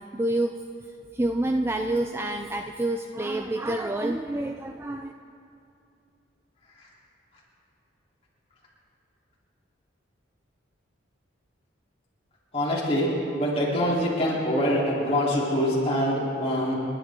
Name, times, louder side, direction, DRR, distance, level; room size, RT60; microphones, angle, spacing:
voice 1, 0.1-0.6 1.1-5.1, right 1 dB, 10° right, 5 dB, 0.3 m, -27 dB
voice 2, 12.5-13.1 13.4-16.7, equal, 30° left, -6 dB, 3.7 m, -24 dB
29.0 x 11.5 x 3.8 m, 2.5 s
head